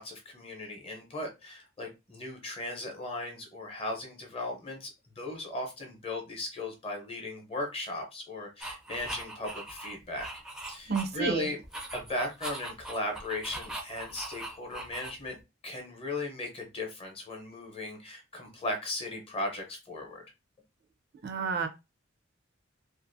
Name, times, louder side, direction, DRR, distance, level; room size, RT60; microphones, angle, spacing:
voice 1, 0.0-4.9 5.2-10.3 10.6-11.6 11.9-15.4 15.6-20.2, left 2 dB, 30° left, 2 dB, 0.7 m, -37 dB
sound 1, 8.6-11.3 11.6-15.4, right 1 dB, 5° right, 0.5 m, -41 dB
voice 2, 10.9-11.5 21.2-21.7, right 5 dB, 55° right, 6 dB, 0.5 m, -30 dB
2.5 x 2.4 x 2.6 m, 0.25 s
head